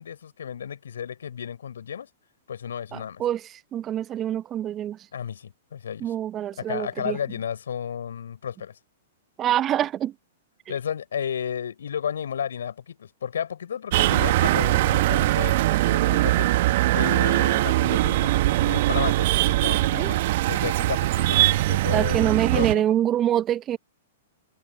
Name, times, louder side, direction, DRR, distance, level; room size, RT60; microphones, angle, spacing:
voice 1, 0.0-2.1 2.5-3.2 5.1-6.1 6.6-8.8 10.7-16.5 16.9-20.2 20.5-23.0, left 8 dB, 70° left, 4.3 m, -33 dB
voice 2, 2.9-3.4 3.7-5.0 6.0-7.2 9.4-10.1 19.9-20.1 21.9-23.8, right 11 dB, 25° right, 0.9 m, -25 dB
sound 1, 13.9-22.7, right 17 dB, 50° right, 1.5 m, -21 dB
figure-of-eight pair, 105°, 0 cm